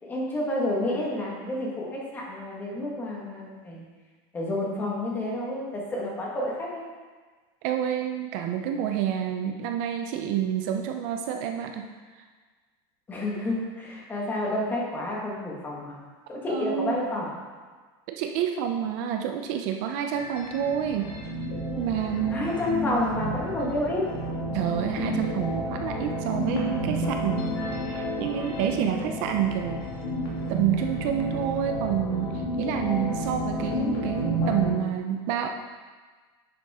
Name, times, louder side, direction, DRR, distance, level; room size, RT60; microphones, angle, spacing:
voice 1, 0.0-3.8 4.3-6.8 13.1-16.0 16.3-17.3 22.3-24.0, left 1 dB, 15° left, -3 dB, 1.6 m, -29 dB
voice 2, 7.6-11.9 16.5-16.9 18.1-21.1 21.8-22.5 24.5-29.9 30.5-35.5, right 9 dB, 45° right, 4 dB, 0.5 m, -28 dB
Searching far North, 20.0-34.7, equal, 70° left, 2.7 m, -31 dB
9.7 x 6.9 x 3.6 m, 1.4 s
supercardioid pair, 175°, 13 cm